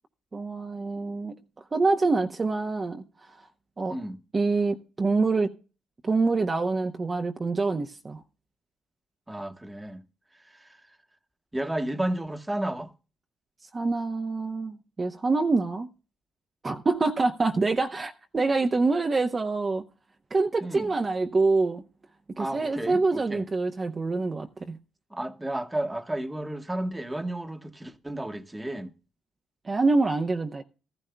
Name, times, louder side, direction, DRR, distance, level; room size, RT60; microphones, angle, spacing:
voice 1, 0.3-1.4 1.7-3.0 3.8-4.0 4.3-5.5 6.0-8.2 13.7-15.9 16.6-19.8 20.3-21.8 22.4-24.8 29.6-30.6, right 3 dB, 30° right, 0.8 m, -26 dB
voice 2, 9.3-10.0 10.4-10.8 11.5-12.9 20.6-20.9 22.3-23.4 25.1-28.9, right 1 dB, 10° right, 1.2 m, -32 dB
15.0 x 13.5 x 2.2 m
cardioid pair, 90°, 0 cm